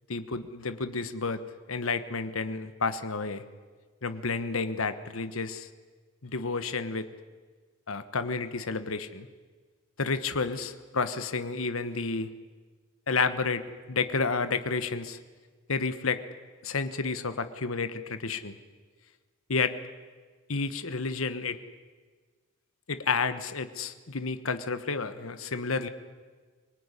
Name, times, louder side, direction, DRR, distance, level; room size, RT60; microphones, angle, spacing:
voice 1, 0.1-1.4 1.7-3.4 4.0-5.7 6.2-7.1 7.9-9.3 10.0-12.3 13.1-13.6 13.9-15.2 15.7-16.2 16.6-18.6 19.5-19.7 20.5-21.6 22.9-25.9, left 4 dB, 75° left, 11 dB, 1.2 m, -30 dB
24.5 x 19.0 x 9.9 m, 1.5 s
head